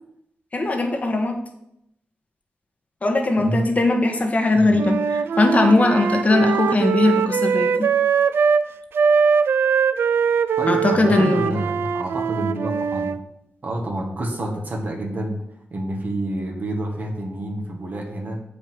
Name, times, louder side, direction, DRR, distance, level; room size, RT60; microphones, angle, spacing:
voice 1, 0.5-1.4 3.0-5.0 5.4-7.9 10.7-11.6, left 2 dB, 40° left, 4 dB, 1.3 m, -19 dB
voice 2, 3.4-3.7 4.5-4.8 10.6-13.2 13.6-15.4 15.7-18.4, right 1 dB, 50° right, 2 dB, 1.7 m, -28 dB
Wind instrument woodwind instrument, 4.7-8.7 8.9-13.2, right 6 dB, 80° right, 0.4 m, -21 dB
7.3 x 5.2 x 6.2 m, 0.79 s
cardioid pair, 80°, 4 cm